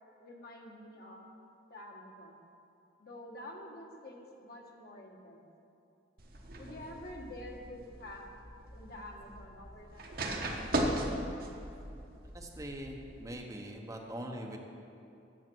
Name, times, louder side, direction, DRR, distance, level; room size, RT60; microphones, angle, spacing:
voice 1, 0.2-1.3 1.7-2.5 3.0-5.5 6.6-8.3 8.7-10.2, left 1 dB, 55° left, 0 dB, 1.3 m, -48 dB
sound 1, 6.2-13.3, right 1 dB, 55° right, 1.1 m, -38 dB
voice 2, 12.3-14.6, right 1 dB, 20° right, 1 dB, 0.9 m, -42 dB
9.1 x 7.3 x 6.2 m, 2.7 s
head